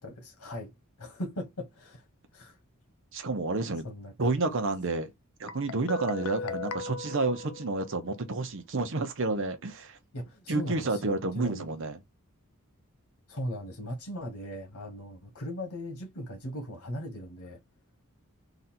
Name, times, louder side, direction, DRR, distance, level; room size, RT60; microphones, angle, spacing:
voice 1, 0.0-0.7 1.0-2.0 2.3-2.6 3.8-4.1 6.4-6.6 10.1-11.7 13.3-17.6, left 1 dB, 90° left, 1.5 m, -38 dB
voice 2, 3.1-3.9 4.2-5.1 5.4-10.0 10.5-12.0, right 3 dB, 60° right, 0.8 m, -30 dB
Guitar, 5.5-8.3, left 4 dB, 70° left, 0.4 m, -38 dB
3.9 x 2.6 x 4.3 m
head